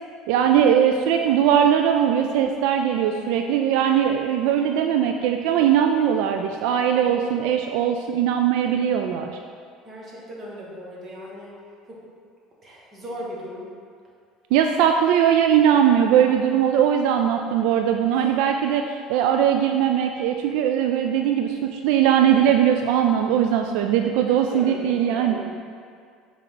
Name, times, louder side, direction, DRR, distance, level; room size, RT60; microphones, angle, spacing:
voice 1, 0.3-9.3 14.5-25.4, right 9 dB, 75° right, 4 dB, 0.3 m, -20 dB
voice 2, 9.8-11.5 11.9-12.0 12.6-13.7 18.1-18.4 24.3-25.4, equal, 25° right, -5 dB, 1.6 m, -37 dB
6.9 x 4.6 x 3.8 m, 2.1 s
cardioid pair, 140°, 0 cm